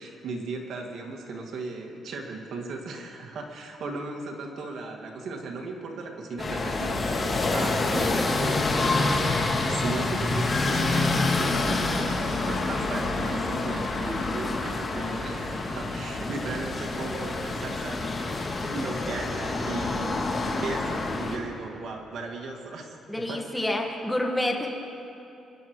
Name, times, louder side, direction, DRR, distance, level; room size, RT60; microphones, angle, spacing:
voice 1, 0.0-23.0 23.3-23.4, right 3 dB, 65° right, 1 dB, 2.0 m, -37 dB
sound 1, 6.4-21.4, left 3 dB, 35° left, 2.3 m, -27 dB
voice 2, 23.1-24.7, left 1 dB, 10° left, 1 dB, 1.7 m, -28 dB
25.5 x 11.5 x 3.2 m, 2.8 s
cardioid pair, 90°, 0 cm